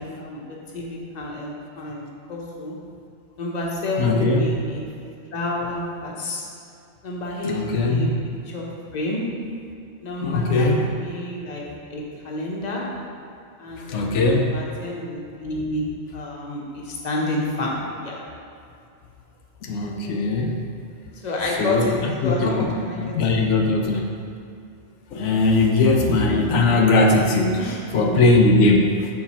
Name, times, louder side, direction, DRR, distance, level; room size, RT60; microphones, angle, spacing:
voice 1, 0.0-2.8 3.4-4.9 5.3-6.4 7.0-8.1 8.5-8.6 8.9-9.2 10.0-11.6 11.9-12.9 13.6-17.7 18.0-18.2 21.2-21.9 22.2-23.4 27.6-28.1, left 2 dB, 40° left, -3 dB, 1.0 m, -29 dB
voice 2, 4.0-4.4 7.4-8.1 10.2-10.8 13.9-14.5 19.6-20.6 21.6-24.1 25.1-29.1, left 2 dB, 85° left, 1 dB, 0.9 m, -20 dB
6.1 x 4.5 x 4.2 m, 2.5 s
omnidirectional pair, 1.2 m